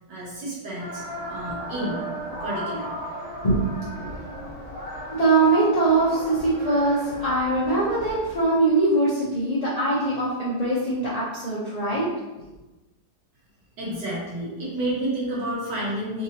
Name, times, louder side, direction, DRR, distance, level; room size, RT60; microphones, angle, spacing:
voice 1, 0.1-2.0 2.4-2.9 13.8-16.2, right 1 dB, 85° right, -6 dB, 1.8 m, -30 dB
sound 1, 0.8-8.4, equal, 10° right, 0.7 m, -36 dB
voice 2, 5.1-12.1, right 2 dB, 55° left, -8 dB, 0.4 m, -22 dB
3.8 x 2.8 x 2.8 m, 1.1 s
omnidirectional pair, 1.8 m